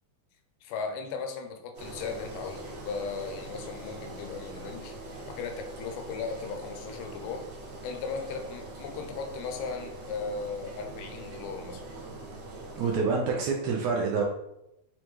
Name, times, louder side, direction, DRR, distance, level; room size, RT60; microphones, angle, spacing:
voice 1, 0.6-5.0 5.3-7.5 7.8-11.9, left 5 dB, 85° left, 5 dB, 2.0 m, -37 dB
Engine, 1.7-13.0, right 2 dB, 60° right, 1.9 m, -42 dB
voice 2, 12.8-14.2, right 4 dB, 80° right, 0 dB, 1.6 m, -27 dB
5.3 x 2.3 x 3.0 m, 0.85 s
omnidirectional pair, 3.6 m